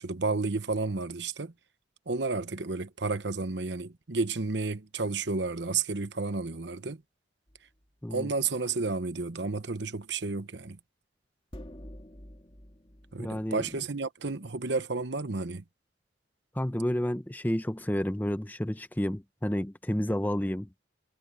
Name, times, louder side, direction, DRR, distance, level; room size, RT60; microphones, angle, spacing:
voice 1, 0.0-1.5 2.1-7.0 8.1-10.8 13.1-15.6, right 3 dB, 65° right, 1.0 m, -31 dB
sound 1, 7.5-7.8 11.5-13.8, equal, 30° left, 2.3 m, -48 dB
voice 2, 13.2-13.6 16.5-20.7, equal, 10° left, 0.7 m, -30 dB
head